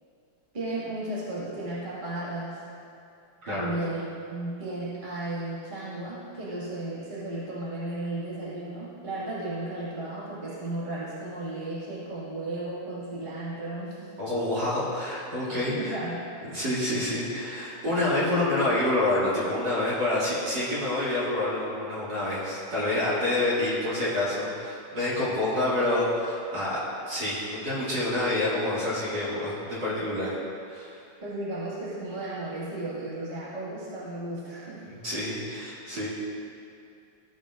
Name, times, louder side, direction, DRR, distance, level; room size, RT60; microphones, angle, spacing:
voice 1, 0.5-2.6 3.5-14.1 15.7-16.4 31.2-34.9, right 2 dB, 20° right, -9 dB, 1.6 m, -34 dB
voice 2, 3.4-3.7 14.2-16.0 16.5-30.4 30.7-31.0 34.9-36.1, left 1 dB, 40° right, -9 dB, 2.6 m, -27 dB
15.5 x 7.4 x 2.5 m, 2.5 s
omnidirectional pair, 3.3 m